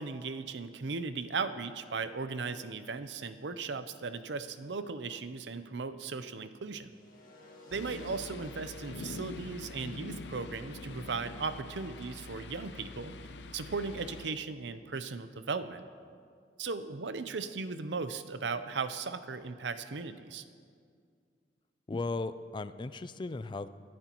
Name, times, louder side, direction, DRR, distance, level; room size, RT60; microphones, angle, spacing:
voice 1, 0.0-6.9 7.7-13.1 13.5-15.8 16.6-20.4, right 4 dB, 85° right, 11 dB, 0.7 m, -37 dB
sound 1, 6.9-12.9, left 1 dB, 50° left, 1.9 m, -58 dB
sound 2, 7.7-14.3, left 2 dB, 80° left, 0.7 m, -45 dB
voice 2, 21.9-23.7, left 3 dB, 25° left, 14 dB, 0.4 m, -36 dB
23.5 x 11.0 x 3.0 m, 2.2 s
head